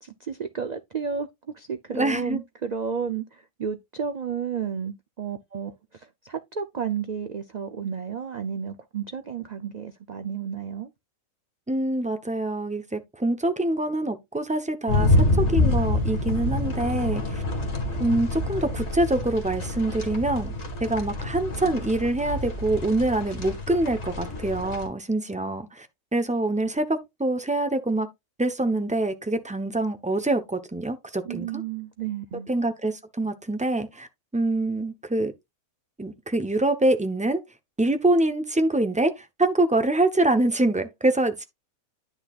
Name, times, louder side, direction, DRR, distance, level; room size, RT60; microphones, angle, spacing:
voice 1, 0.0-1.3 1.5-10.9 31.2-32.5, right 7 dB, 85° right, 0.3 m, -32 dB
voice 2, 1.9-2.4 11.7-17.4 18.0-20.5 20.8-25.9 26.1-28.1 28.4-31.6 32.5-34.1 34.3-35.3 36.0-37.4 37.8-41.4, right 2 dB, 10° right, 0.5 m, -25 dB
sound 1, 14.9-24.9, left 2 dB, 50° left, 2.4 m, -27 dB
10.0 x 6.4 x 2.4 m
omnidirectional pair, 1.5 m